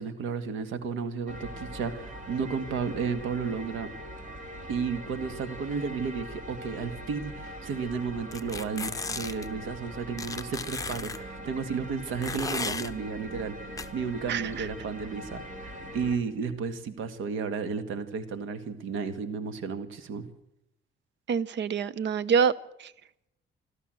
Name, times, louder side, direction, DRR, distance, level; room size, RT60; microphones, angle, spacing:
voice 1, 0.0-3.9 4.7-13.5 13.9-20.3, right 5 dB, 90° right, 11 dB, 1.9 m, -33 dB
sound 1, 1.3-16.2, equal, 40° right, 4.0 m, -42 dB
sound 2, 8.3-9.5 10.2-11.2 12.2-12.9 13.8-13.9, left 4 dB, 15° left, 1.0 m, -34 dB
voice 2, 14.3-14.7 21.3-22.5 22.8-22.9, right 6 dB, 65° right, 19 dB, 0.9 m, -26 dB
27.0 x 12.5 x 7.8 m, 0.82 s
cardioid pair, 90°, 20 cm